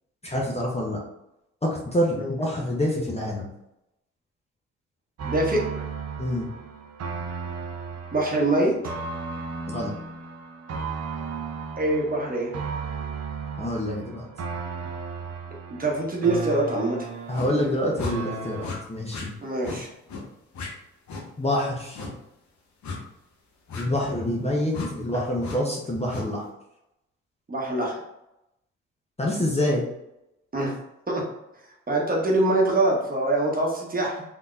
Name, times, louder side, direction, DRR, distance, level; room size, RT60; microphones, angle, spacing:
voice 1, 0.2-1.0 1.6-3.5 6.2-6.5 9.7-9.9 13.6-14.2 17.3-19.3 21.4-22.1 23.8-26.5 29.2-29.8, left 1 dB, 20° left, -2 dB, 0.8 m, -26 dB
voice 2, 5.2-5.8 8.1-8.9 11.8-12.5 15.7-17.0 19.4-19.9 25.1-25.2 27.5-28.0 30.5-30.7 31.1-31.2 31.9-34.2, right 2 dB, 25° right, -2 dB, 1.1 m, -24 dB
sound 1, 5.2-18.8, right 5 dB, 45° right, 0.6 m, -35 dB
sound 2, 17.3-17.5 18.0-18.2 18.6-18.8 19.1-19.3 19.6-19.8 20.1-20.2 20.5-20.7 21.1-21.2 21.9-22.1 22.8-23.0 23.7-23.8 24.7-24.9 25.4-25.6 26.1-26.3, left 3 dB, 55° left, 0.9 m, -34 dB
3.5 x 2.7 x 2.4 m, 0.87 s
hypercardioid pair, 40°, 35 cm